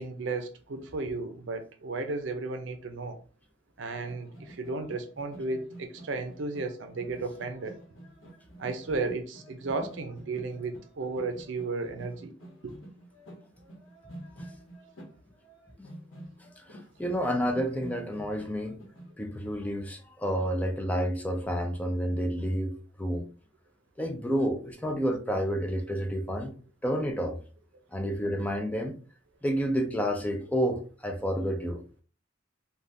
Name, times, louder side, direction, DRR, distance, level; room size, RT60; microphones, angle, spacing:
voice 1, 0.0-3.2 3.8-7.7 8.6-12.3 12.6-12.7, right 3 dB, 70° right, 0.5 m, -34 dB
sound 1, 4.0-19.2, right 1 dB, 85° left, 1.0 m, -49 dB
voice 2, 16.7-18.8 19.2-22.7 23.0-23.3 24.0-26.5 26.8-27.4 27.9-28.9 29.4-31.8, equal, 10° left, 0.3 m, -30 dB
3.3 x 2.3 x 2.6 m
head